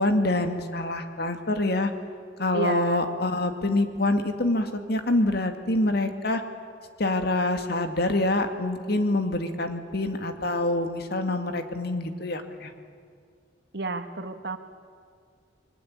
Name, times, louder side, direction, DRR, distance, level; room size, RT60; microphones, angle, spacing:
voice 1, 0.0-1.9 2.4-6.4 7.0-12.7, left 2 dB, 60° left, 6 dB, 2.2 m, -26 dB
voice 2, 2.5-3.0 13.7-14.6, right 3 dB, 65° right, 7 dB, 1.8 m, -31 dB
29.0 x 22.0 x 8.9 m, 2.2 s
head